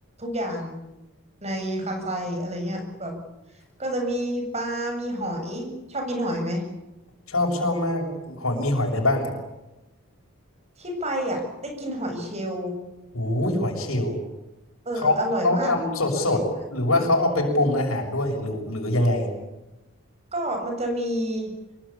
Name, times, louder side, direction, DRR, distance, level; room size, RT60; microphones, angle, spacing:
voice 1, 0.2-0.8 1.4-3.2 3.8-6.7 10.8-12.8 14.9-15.7 16.1-16.4 20.3-21.5, equal, 30° right, 4 dB, 7.5 m, -29 dB
voice 2, 7.3-9.3 13.1-14.2 15.0-15.1 15.4-16.4 16.7-19.3, left 1 dB, 85° left, 1 dB, 6.7 m, -23 dB
26.0 x 22.0 x 8.7 m, 1.0 s
head